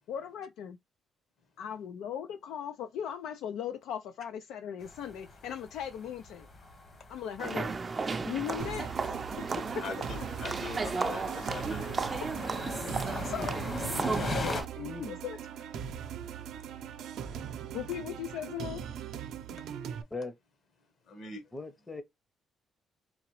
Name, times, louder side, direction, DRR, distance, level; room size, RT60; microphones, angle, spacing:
voice 1, 0.1-0.8 1.6-6.5 7.1-7.7 8.2-9.2 9.5-9.6 12.8-13.6 14.3-14.7 15.1-15.4 17.7-18.8, left 9 dB, 90° left, 0.4 m, -38 dB
sound 1, 4.8-14.6, left 2 dB, 40° left, 1.1 m, -41 dB
sound 2, 7.4-14.7, right 4 dB, 35° right, 0.4 m, -34 dB
sound 3, 8.6-20.0, right 8 dB, 80° right, 0.6 m, -40 dB
voice 2, 9.8-11.9 21.1-21.5, left 4 dB, 65° left, 1.7 m, -42 dB
voice 3, 14.5-15.2 20.1-20.3 21.5-22.0, left 3 dB, 20° left, 0.7 m, -39 dB
3.9 x 2.8 x 3.1 m
cardioid pair, 90°, 0 cm